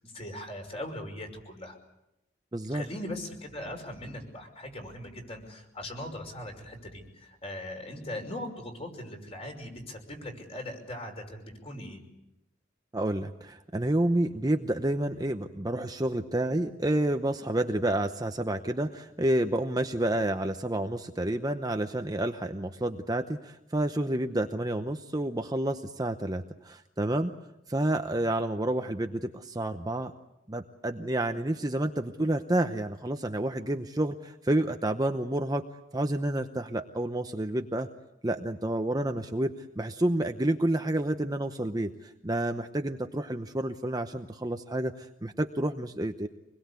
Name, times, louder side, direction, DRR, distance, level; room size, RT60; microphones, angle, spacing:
voice 1, 0.1-1.8 2.7-12.0, left 1 dB, 30° left, 4 dB, 5.6 m, -40 dB
voice 2, 2.5-2.8 12.9-27.3 27.7-30.1 30.5-35.7 35.9-37.9 38.2-46.3, right 1 dB, 20° right, 6 dB, 0.8 m, -29 dB
26.5 x 21.0 x 8.3 m, 0.88 s
head